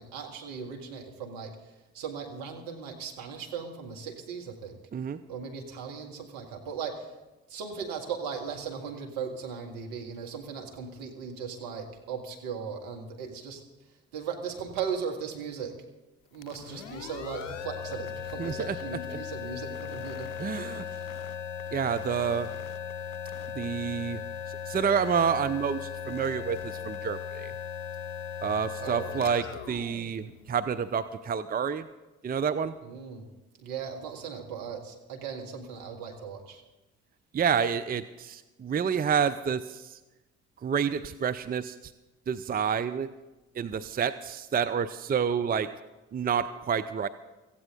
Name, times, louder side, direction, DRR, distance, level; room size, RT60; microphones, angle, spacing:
voice 1, 0.0-4.8 5.3-7.1 7.5-13.6 14.1-15.8 16.3-20.3 20.6-21.1 28.8-29.4 32.8-33.3 33.6-36.6, right 6 dB, 65° right, 2 dB, 2.1 m, -38 dB
sound 1, 16.3-31.0, left 8 dB, 80° left, 0.8 m, -38 dB
voice 2, 18.4-18.7 20.4-20.8 21.7-22.5 23.6-24.2 24.5-27.5 28.4-31.9 32.2-32.7 37.3-40.0 40.6-41.9 42.3-43.1 43.6-45.7 46.1-47.1, right 7 dB, 25° right, 12 dB, 0.6 m, -29 dB
17.0 x 15.0 x 3.9 m, 1.1 s
figure-of-eight pair, 45°, 37 cm